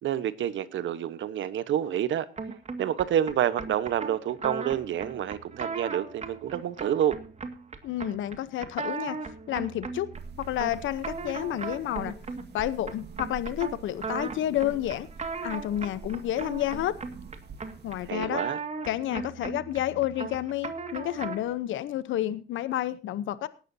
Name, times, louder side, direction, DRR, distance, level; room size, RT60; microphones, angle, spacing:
voice 1, 0.0-2.3 2.8-7.2 18.1-18.6, right 10 dB, 70° right, 1.2 m, -28 dB
sound 1, 2.4-21.6, right 4 dB, 35° right, 2.1 m, -38 dB
voice 2, 7.8-9.2 9.5-10.1 10.4-12.1 12.5-15.1 15.4-16.9 17.8-18.4 18.9-23.5, left 13 dB, 80° left, 0.9 m, -30 dB
sound 2, 10.1-18.1, right 5 dB, 55° right, 2.2 m, -45 dB
18.5 x 11.5 x 2.8 m
cardioid pair, 90°, 20 cm